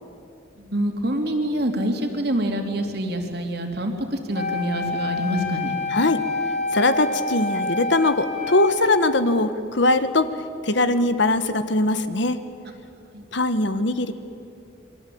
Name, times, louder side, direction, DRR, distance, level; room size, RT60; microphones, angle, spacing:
voice 1, 0.6-5.7 13.1-13.2, right 1 dB, 50° right, 4 dB, 3.0 m, -26 dB
Wind instrument woodwind instrument, 4.3-9.4, left 3 dB, 35° left, 2.5 m, -28 dB
voice 2, 5.9-6.2 6.7-10.3 10.6-12.4 13.3-14.1, left 2 dB, 60° left, 11 dB, 1.3 m, -21 dB
28.0 x 23.5 x 8.6 m, 2.8 s
head